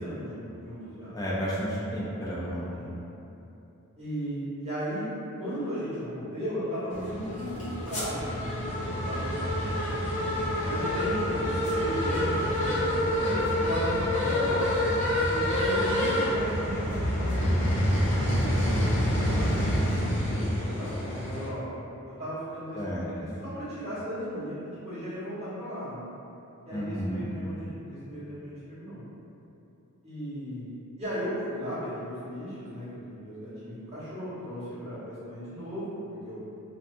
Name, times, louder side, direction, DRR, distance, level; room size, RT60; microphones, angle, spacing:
voice 1, 0.0-1.2 2.7-2.9 4.0-5.1 5.4-9.4 9.7-14.6 15.3-17.9 18.3-20.2 20.6-21.8 22.0-26.1 26.6-29.0 30.0-36.7, equal, 30° right, -14 dB, 1.2 m, -36 dB
voice 2, 1.1-2.7 22.7-23.3 26.7-27.3, equal, 15° left, -8 dB, 0.5 m, -32 dB
sound 1, 6.9-21.5, equal, 35° left, 0.9 m, -27 dB
2.6 x 2.2 x 2.6 m, 2.9 s
head